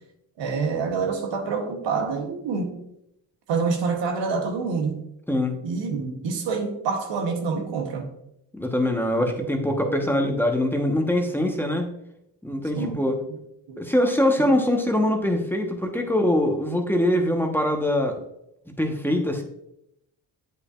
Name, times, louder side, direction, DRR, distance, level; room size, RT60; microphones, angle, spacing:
voice 1, 0.4-2.8 3.5-5.0 5.6-8.1 9.4-10.4 12.7-13.0 13.3-13.4 13.7-13.8, right 5 dB, 80° right, 4 dB, 1.1 m, -27 dB
voice 2, 8.5-11.9 12.4-13.2 13.8-18.2 18.8-19.4, left 1 dB, 5° left, 3 dB, 1.1 m, -23 dB
8.1 x 5.2 x 2.5 m, 0.78 s
supercardioid pair, 55°, 44 cm